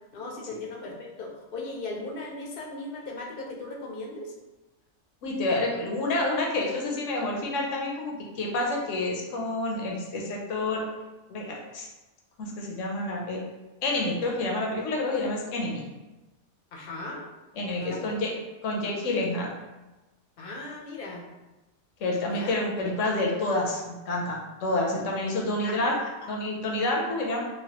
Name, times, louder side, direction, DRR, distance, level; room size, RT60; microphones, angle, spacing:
voice 1, 0.1-4.3 14.2-14.4 16.7-17.2 17.8-18.1 20.4-21.2 22.3-22.5 25.6-26.3, left 2 dB, 60° left, -1 dB, 0.7 m, -38 dB
voice 2, 5.2-10.9 11.3-11.9 12.4-13.4 13.8-15.9 17.6-18.3 18.6-19.5 22.0-25.9 26.3-27.4, left 2 dB, 80° left, -1 dB, 1.0 m, -28 dB
3.1 x 2.3 x 2.8 m, 1.1 s
omnidirectional pair, 1.3 m